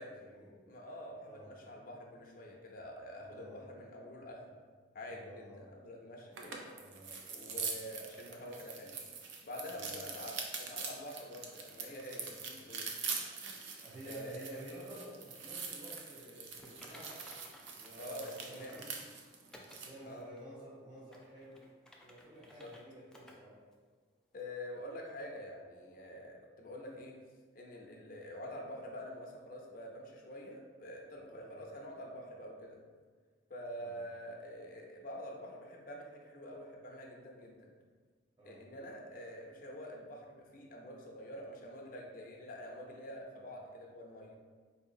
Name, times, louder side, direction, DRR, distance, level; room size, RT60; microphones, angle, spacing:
voice 1, 0.0-0.5 1.2-1.5 3.1-3.7 5.0-5.6 6.7-7.8 9.7-10.0 13.8-17.2 17.7-19.0 19.5-21.6 22.0-23.6 31.2-31.7 33.8-34.1 38.4-38.6, equal, 25° right, -9 dB, 1.1 m, -52 dB
voice 2, 0.7-4.6 4.9-6.6 7.3-9.0 9.4-13.6 14.0-14.6 18.0-18.8 20.0-20.3 22.6-22.7 24.3-27.1 27.5-32.8 33.5-37.7 38.4-44.4, equal, 50° left, 0 dB, 0.6 m, -47 dB
sound 1, 6.3-20.0, right 5 dB, 90° right, 0.5 m, -44 dB
Typing, 16.6-18.9 19.5-19.9 20.4-20.5 21.0-22.8 23.1-23.4 23.7-23.8 24.4-24.5, equal, 5° left, 0.3 m, -57 dB
4.6 x 2.7 x 2.6 m, 1.5 s
head